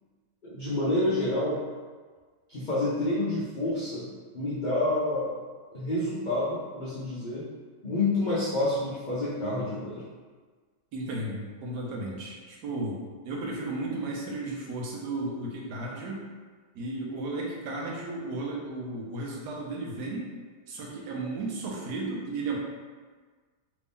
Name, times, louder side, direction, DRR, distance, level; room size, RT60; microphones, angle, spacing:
voice 1, 0.4-1.6 2.5-4.1 4.3-5.3 5.7-7.5 7.8-10.0, left 2 dB, 80° left, -9 dB, 0.4 m, -28 dB
voice 2, 10.9-13.0 13.2-16.2 16.7-20.3 20.7-22.6, right 2 dB, 80° right, -2 dB, 1.3 m, -34 dB
3.4 x 2.6 x 3.5 m, 1.5 s
omnidirectional pair, 1.8 m